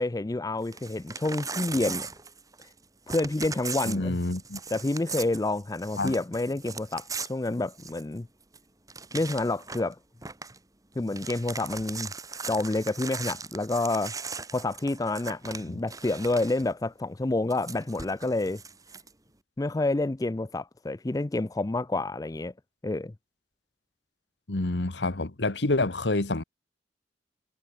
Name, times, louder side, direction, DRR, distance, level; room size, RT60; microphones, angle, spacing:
voice 1, 0.0-2.1 3.1-4.2 4.7-8.3 9.1-10.0 11.0-12.1 12.5-14.1 14.5-18.6 19.6-22.5 22.8-23.1, left 2 dB, 20° left, 0.4 m, -28 dB
Crumpling crinkling / Tearing, 0.6-2.8 3.1-8.2 8.5-8.6 8.9-9.9 10.2-10.6 10.9-16.7 17.5-19.1, right 5 dB, 20° right, 2.1 m, -39 dB
voice 2, 3.9-4.6 6.0-6.2 15.7-15.8 24.5-26.4, left 2 dB, 80° left, 1.5 m, -28 dB
head